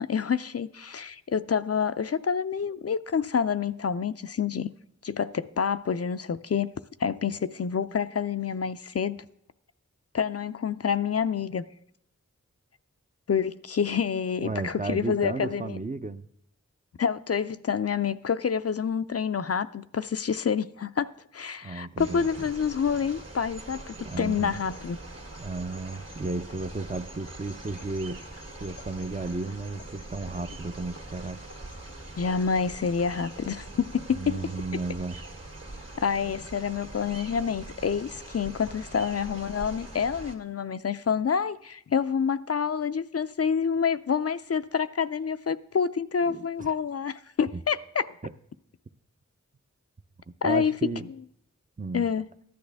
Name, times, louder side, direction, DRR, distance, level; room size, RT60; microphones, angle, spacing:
voice 1, 0.0-4.7 5.0-6.7 7.0-9.2 10.1-11.6 13.3-15.8 17.0-25.0 32.2-34.4 34.7-34.8 36.0-48.1 50.4-50.7 51.9-52.3, left 6 dB, 55° left, 0.4 m, -28 dB
voice 2, 14.4-16.3 21.6-22.3 24.0-24.6 25.4-28.3 28.6-31.4 34.1-35.2 46.3-46.7 48.2-48.3 50.4-51.1 51.8-52.1, right 3 dB, 25° right, 0.5 m, -34 dB
sound 1, 22.0-40.4, right 2 dB, 55° right, 1.9 m, -43 dB
14.0 x 10.5 x 3.4 m
wide cardioid pair, 40°, 30 cm